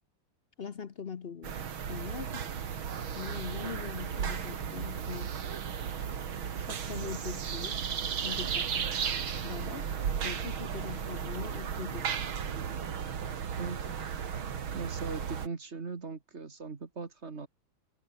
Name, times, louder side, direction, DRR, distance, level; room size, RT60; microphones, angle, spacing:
voice 1, 0.6-1.6 1.9-2.5 3.1-5.3 6.6-7.8 8.2-9.2 9.4-9.9 10.2-12.3, left 6 dB, 50° left, 0.7 m, -42 dB
sound 1, 1.4-15.5, right 7 dB, 85° right, 2.7 m, -35 dB
voice 2, 13.6-14.0 14.7-17.5, right 4 dB, 35° right, 1.9 m, -39 dB
omnidirectional pair, 2.2 m